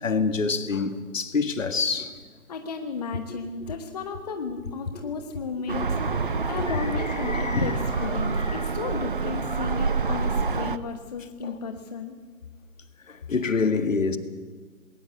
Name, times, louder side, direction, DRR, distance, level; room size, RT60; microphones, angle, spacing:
voice 1, 0.0-2.2 6.1-6.2 6.6-7.8 8.5-8.6 11.4-11.6 13.1-14.2, left 4 dB, 60° left, 1.9 m, -27 dB
voice 2, 2.5-12.2, left 5 dB, 25° left, 1.1 m, -34 dB
sound 1, 5.7-10.8, right 4 dB, 35° right, 0.6 m, -27 dB
20.5 x 18.5 x 8.1 m
figure-of-eight pair, 150°, 44 cm